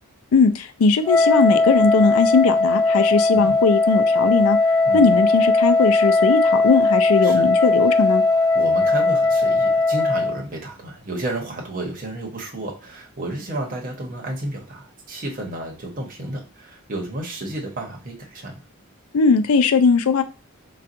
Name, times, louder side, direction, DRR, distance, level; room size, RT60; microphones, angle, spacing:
voice 1, 0.3-4.6 4.9-8.2 19.1-20.2, left 4 dB, 85° left, 10 dB, 0.4 m, -19 dB
Wind instrument woodwind instrument, 1.0-10.4, left 3 dB, 15° left, 0.5 m, -18 dB
voice 2, 8.5-18.6, right 1 dB, 40° right, -1 dB, 0.9 m, -32 dB
4.1 x 2.3 x 2.5 m, 0.33 s
head